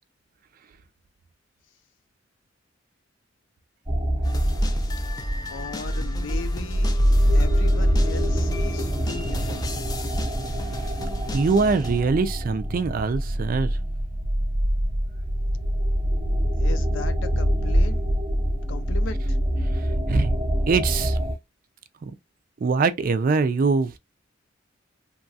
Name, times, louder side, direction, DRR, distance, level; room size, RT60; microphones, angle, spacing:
sound 1, 3.9-21.3, equal, 20° right, 0.8 m, -24 dB
sound 2, 4.2-12.0, left 1 dB, 20° left, 0.4 m, -35 dB
voice 1, 5.5-7.0 7.3-9.6 16.6-18.1 18.7-19.4, left 4 dB, 70° left, 0.5 m, -37 dB
voice 2, 11.3-13.8 19.7-20.4 20.7-21.2 22.0-22.1 22.6-24.0, right 4 dB, 45° right, 0.3 m, -23 dB
2.9 x 2.3 x 2.6 m
head